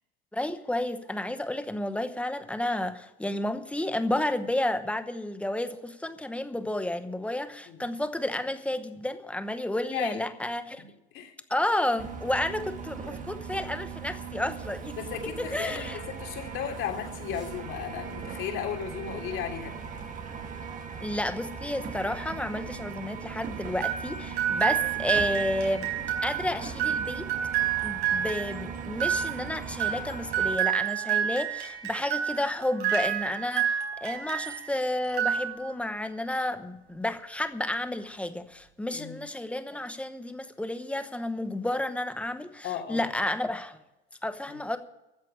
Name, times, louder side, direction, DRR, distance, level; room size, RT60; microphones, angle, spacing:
voice 1, 0.3-10.8 11.5-15.0 15.4-16.0 21.0-25.9 26.2-27.3 27.6-43.8 44.2-44.8, left 1 dB, 5° left, 9 dB, 0.9 m, -31 dB
voice 2, 9.9-10.2 10.8-10.9 11.1-11.3 15.0-19.9 38.9-39.2 42.6-43.1 44.5-44.6, left 8 dB, 40° left, 2 dB, 3.0 m, -35 dB
sound 1, 12.0-30.6, right 6 dB, 25° right, 1.4 m, -39 dB
sound 2, 23.8-34.7 35.0-35.9, right 10 dB, 70° right, 4.6 m, -29 dB
13.0 x 7.5 x 9.9 m, 0.96 s
supercardioid pair, 130°, 32 cm